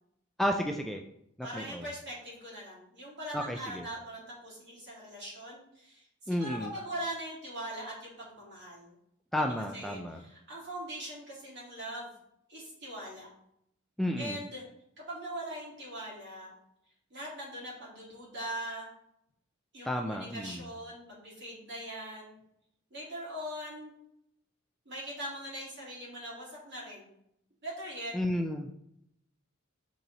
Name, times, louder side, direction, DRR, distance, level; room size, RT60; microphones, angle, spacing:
voice 1, 0.4-1.0 1.4-1.9 3.3-3.9 6.3-6.7 9.3-10.2 14.0-14.4 19.8-20.7 28.1-28.7, equal, ahead, 3 dB, 0.3 m, -32 dB
voice 2, 1.4-8.9 9.4-12.1 12.5-13.3 14.2-14.6 15.0-16.5 17.1-18.9 19.7-22.4 22.9-23.9 24.9-27.1 27.6-28.1, right 1 dB, 55° right, -4 dB, 2.4 m, -41 dB
6.3 x 4.1 x 3.9 m, 0.76 s
head